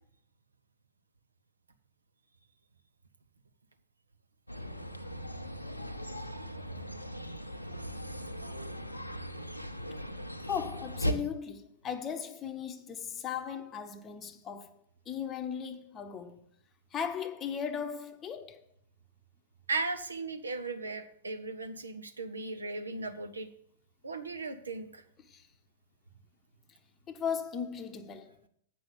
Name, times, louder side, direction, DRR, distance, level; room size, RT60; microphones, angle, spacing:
sound 1, 4.5-11.1, equal, 90° left, 0.8 m, -38 dB
voice 1, 10.5-14.7 15.1-16.4 16.9-18.6 25.2-25.4 27.1-28.4, left 7 dB, 25° left, 0.8 m, -37 dB
voice 2, 19.7-23.5 24.0-25.0, right 3 dB, 75° right, 0.9 m, -37 dB
8.5 x 6.0 x 6.9 m
figure-of-eight pair, 100°, 0 cm